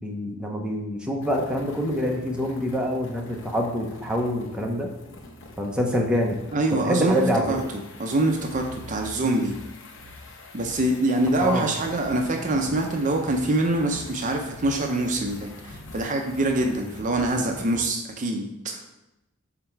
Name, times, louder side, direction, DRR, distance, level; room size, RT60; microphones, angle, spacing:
voice 1, 0.0-4.9 5.6-6.4 6.7-7.6 11.4-11.7, equal, 5° right, -1 dB, 0.8 m, -26 dB
sound 1, 1.2-17.8, left 2 dB, 65° left, 0.9 m, -44 dB
voice 2, 6.5-7.6 8.0-9.5 10.5-15.5 15.9-18.8, right 2 dB, 40° right, 2 dB, 0.6 m, -24 dB
5.9 x 4.3 x 4.5 m, 0.92 s
head